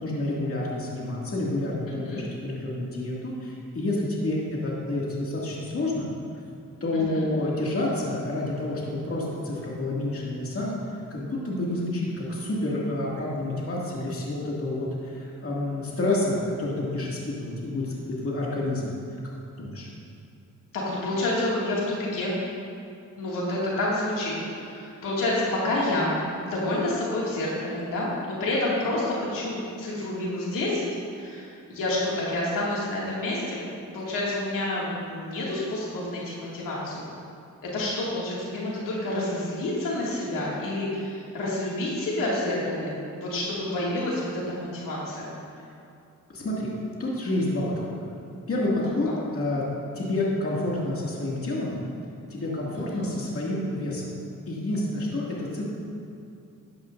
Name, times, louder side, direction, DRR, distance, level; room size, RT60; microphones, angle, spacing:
voice 1, 0.0-6.1 6.8-19.0 19.6-19.9 46.3-46.7 47.0-48.1 48.5-49.1 49.3-49.6 49.9-51.8 52.3-54.1 54.5-55.6, left 1 dB, 45° left, -5 dB, 2.3 m, -29 dB
voice 2, 20.7-22.4 23.2-26.2 26.4-30.9 31.1-33.7 33.9-37.1 37.6-45.3 48.8-49.1 52.9-53.1, left 1 dB, 80° left, -6 dB, 2.3 m, -29 dB
12.5 x 10.0 x 2.6 m, 2.6 s
cardioid pair, 85°, 33 cm